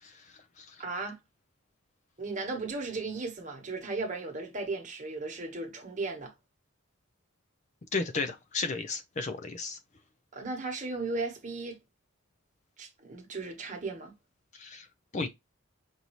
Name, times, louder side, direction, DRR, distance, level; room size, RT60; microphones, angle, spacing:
voice 1, 0.0-0.8 7.9-9.8 14.5-14.9 15.1-15.3, left 4 dB, 35° left, 0.5 m, -34 dB
voice 2, 0.8-1.2 2.2-6.3 10.3-11.8 12.8-14.1, right 3 dB, 35° right, 1.2 m, -36 dB
5.3 x 2.7 x 3.0 m
head